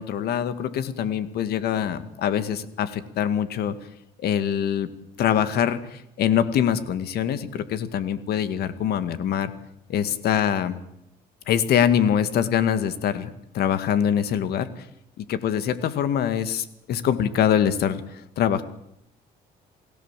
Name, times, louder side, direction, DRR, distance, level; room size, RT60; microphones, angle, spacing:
voice 1, 0.0-3.7 4.2-4.9 5.2-9.5 9.9-10.8 11.5-13.3 13.5-14.9 15.2-18.6, left 9 dB, 70° left, 12 dB, 2.1 m, -24 dB
29.0 x 17.0 x 7.6 m, 0.81 s
cardioid pair, 110°, 17 cm